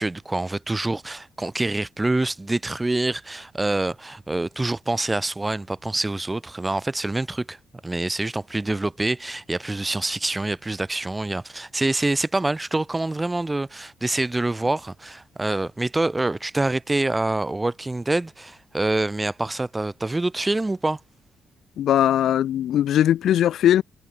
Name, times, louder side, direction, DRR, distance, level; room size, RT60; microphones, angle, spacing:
voice 1, 0.0-7.6 7.8-21.0, right 2 dB, 15° right, 4.0 m, -26 dB
voice 2, 21.8-23.8, left 11 dB, 70° left, 2.5 m, -19 dB
cardioid pair, 90°, 0 cm